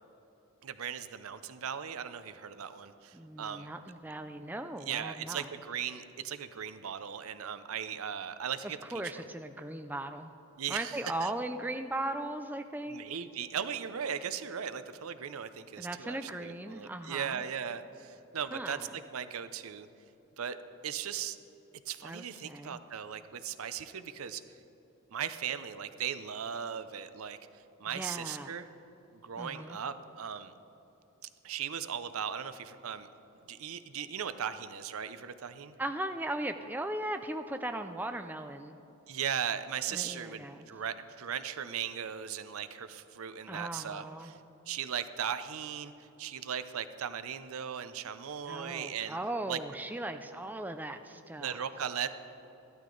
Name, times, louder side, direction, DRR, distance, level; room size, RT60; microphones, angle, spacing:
voice 1, 0.6-3.7 4.9-9.2 10.6-11.3 12.9-19.9 20.4-20.6 20.8-21.4 21.9-24.4 25.1-27.4 27.8-28.7 29.1-30.5 31.4-33.1 33.5-35.7 39.1-44.4 44.7-49.2 49.5-49.6 51.4-52.2, right 8 dB, 80° right, 12 dB, 0.6 m, -38 dB
voice 2, 3.1-5.5 8.9-10.3 10.7-13.0 15.8-17.4 18.5-18.9 22.0-22.8 27.9-28.5 29.4-29.8 35.8-38.8 39.9-40.7 43.5-44.3 48.5-51.6, right 1 dB, 10° right, 7 dB, 0.3 m, -38 dB
14.5 x 12.0 x 3.9 m, 3.0 s
head